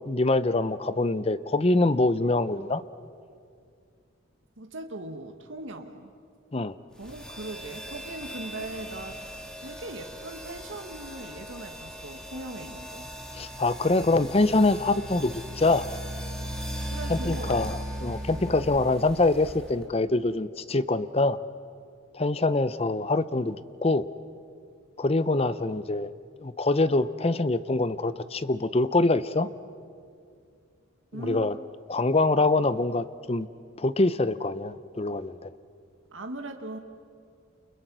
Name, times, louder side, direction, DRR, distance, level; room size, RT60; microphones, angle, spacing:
voice 1, 0.1-2.8 6.5-6.7 13.4-15.8 17.1-21.4 22.1-23.6 23.8-24.1 25.0-26.1 26.4-29.5 31.1-31.6 31.9-33.5 33.8-35.5, left 2 dB, 30° left, 15 dB, 0.6 m, -24 dB
voice 2, 4.6-6.1 7.0-9.2 9.6-13.1 16.9-17.8 20.7-20.9 31.1-31.5 36.1-36.8, right 1 dB, 65° right, 4 dB, 1.5 m, -39 dB
sound 1, 7.0-19.9, equal, 5° left, 2.6 m, -38 dB
29.5 x 29.0 x 6.1 m, 2.3 s
head